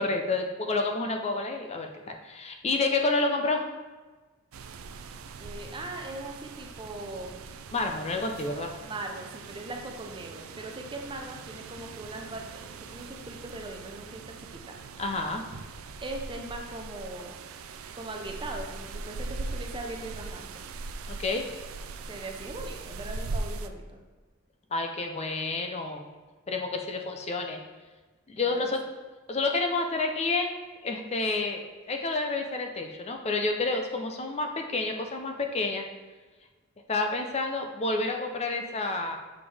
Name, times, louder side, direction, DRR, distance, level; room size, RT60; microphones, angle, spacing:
voice 1, 0.0-3.6 7.7-8.7 15.0-15.4 21.1-21.4 24.7-26.1 26.5-27.6 28.3-28.8 29.3-30.5 30.8-35.8 36.9-39.2, left 3 dB, 30° left, 4 dB, 0.5 m, -29 dB
sound 1, 4.5-23.7, right 3 dB, 80° right, 0.4 m, -41 dB
voice 2, 5.4-7.5 8.8-14.8 16.0-17.4 17.9-20.6 22.0-24.0 28.4-28.6, right 2 dB, 25° right, 2 dB, 0.6 m, -40 dB
7.0 x 5.2 x 3.4 m, 1.3 s
head